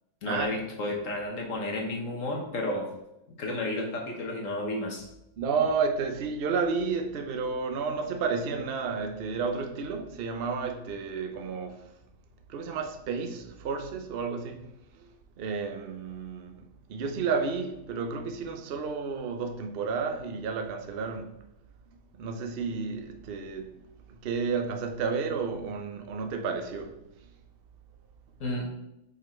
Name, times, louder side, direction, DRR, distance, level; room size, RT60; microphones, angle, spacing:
voice 1, 0.2-2.8 3.4-5.0 28.4-28.7, left 1 dB, 65° left, 1.5 m, -32 dB
voice 2, 5.4-11.9 12.5-21.4 22.2-23.8 24.1-27.0, right 5 dB, 55° right, 0.7 m, -31 dB
5.5 x 4.1 x 4.4 m
omnidirectional pair, 1.4 m